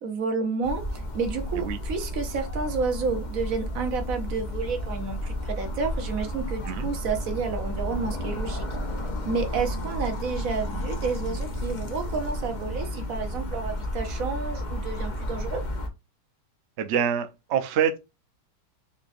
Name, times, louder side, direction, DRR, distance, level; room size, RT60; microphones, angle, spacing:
voice 1, 0.0-8.6 9.3-15.6, right 4 dB, 60° right, 1.2 m, -30 dB
sound 1, 0.6-15.9, equal, 45° left, 0.5 m, -32 dB
voice 2, 16.8-18.0, right 8 dB, 85° right, 0.6 m, -26 dB
4.2 x 3.0 x 2.5 m
omnidirectional pair, 1.9 m